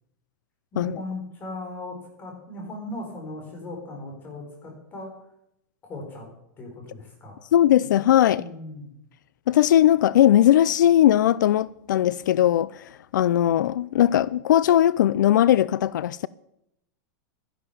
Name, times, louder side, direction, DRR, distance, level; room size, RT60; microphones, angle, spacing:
voice 1, 0.7-5.1 5.8-6.3 6.6-7.5 8.4-8.9, left 2 dB, 20° left, 4.4 m, -38 dB
voice 2, 7.5-8.4 9.5-16.3, left 11 dB, 85° left, 0.4 m, -19 dB
13.0 x 11.0 x 7.1 m
supercardioid pair, 170°, 10 cm